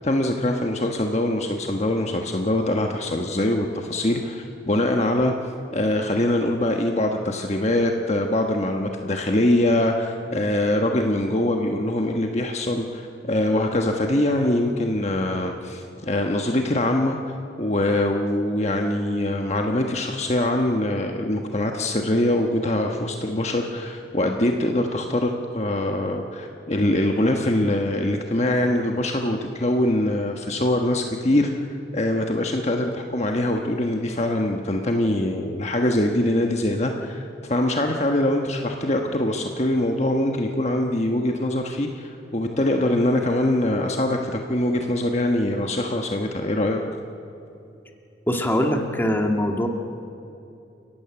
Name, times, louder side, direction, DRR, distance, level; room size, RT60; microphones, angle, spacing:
voice 1, 0.0-5.3 5.7-31.5 31.9-46.8, left 1 dB, 35° left, 3 dB, 1.3 m, -23 dB
voice 2, 48.3-49.7, left 1 dB, 10° left, 2 dB, 1.8 m, -22 dB
29.0 x 15.0 x 9.7 m, 2.7 s
head